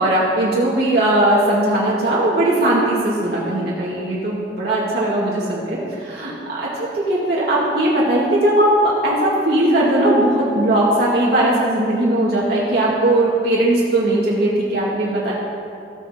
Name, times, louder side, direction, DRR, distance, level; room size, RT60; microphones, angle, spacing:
voice 1, 0.0-15.3, right 1 dB, 60° right, -6 dB, 2.0 m, -18 dB
18.5 x 7.2 x 4.3 m, 2.6 s
head